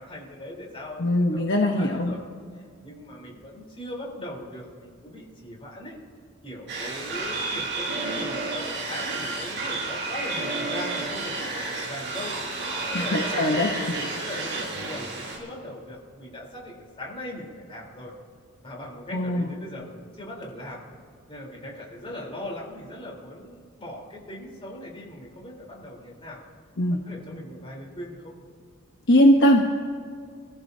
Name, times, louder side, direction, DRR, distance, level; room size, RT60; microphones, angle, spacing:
voice 1, 0.0-2.2 2.8-6.0 6.4-18.1 18.6-20.8 21.3-26.4 27.0-28.3, left 1 dB, 25° left, -3 dB, 3.8 m, -39 dB
voice 2, 1.0-2.1 12.9-13.7 19.1-19.5 26.8-27.0 29.1-29.6, left 1 dB, 55° left, 1 dB, 1.1 m, -20 dB
sound 1, 6.7-15.4, right 3 dB, 55° right, 4.9 m, -31 dB
27.0 x 14.5 x 2.8 m, 2.1 s
head